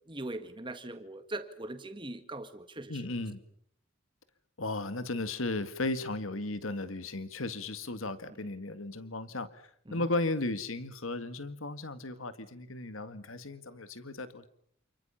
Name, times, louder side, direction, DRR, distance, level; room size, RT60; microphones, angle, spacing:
voice 1, 0.1-3.1 8.4-8.5 9.9-10.1, right 2 dB, 25° right, 9 dB, 1.9 m, -41 dB
voice 2, 2.9-3.4 4.6-9.6 9.9-14.5, left 2 dB, 75° left, 11 dB, 1.9 m, -35 dB
28.5 x 28.5 x 5.8 m, 0.66 s
head